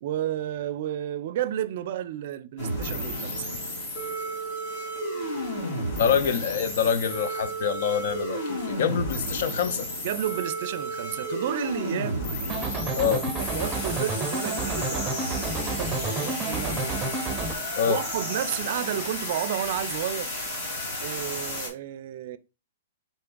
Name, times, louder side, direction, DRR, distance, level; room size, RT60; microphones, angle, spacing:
voice 1, 0.0-3.4 10.0-12.4 13.0-15.2 15.5-17.0 17.8-20.3 21.0-22.4, right 11 dB, 55° right, 0.4 m, -32 dB
sound 1, 2.6-21.7, equal, 40° left, 2.2 m, -32 dB
voice 2, 6.0-9.9 12.9-13.2 17.8-18.0, left 8 dB, 60° left, 0.5 m, -25 dB
sound 2, 12.5-17.5, right 3 dB, 15° right, 0.7 m, -30 dB
4.1 x 3.4 x 3.7 m
hypercardioid pair, 145°, 0 cm